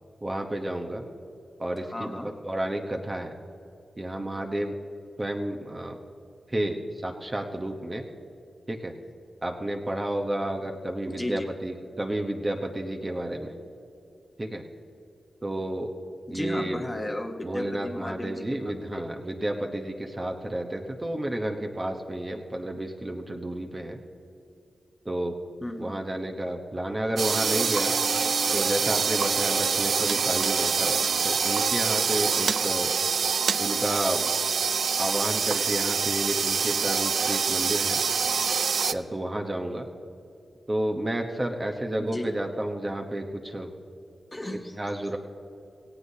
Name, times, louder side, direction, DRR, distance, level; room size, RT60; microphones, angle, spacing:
voice 1, 0.2-1.0 1.6-3.4 4.0-4.7 5.2-6.0 6.5-8.0 8.7-8.9 9.4-13.5 14.4-14.6 15.4-15.9 16.3-16.8 17.4-24.0 25.0-25.3 25.8-27.9 28.5-31.0 31.2-32.9 33.6-34.3 35.0-38.0 38.9-39.9 40.7-43.7 44.8-45.2, right 1 dB, 25° right, 3 dB, 1.0 m, -31 dB
voice 2, 1.8-2.3 11.1-11.5 16.3-19.0 25.6-26.0 42.0-42.3 44.3-44.8, left 1 dB, 20° left, 5 dB, 1.1 m, -34 dB
Bowed string instrument, 27.2-31.9, left 2 dB, 35° left, 0.6 m, -42 dB
sound 1, 27.2-38.9, right 6 dB, 75° right, 0.3 m, -25 dB
17.5 x 16.5 x 2.8 m, 2.6 s
wide cardioid pair, 90°, 0 cm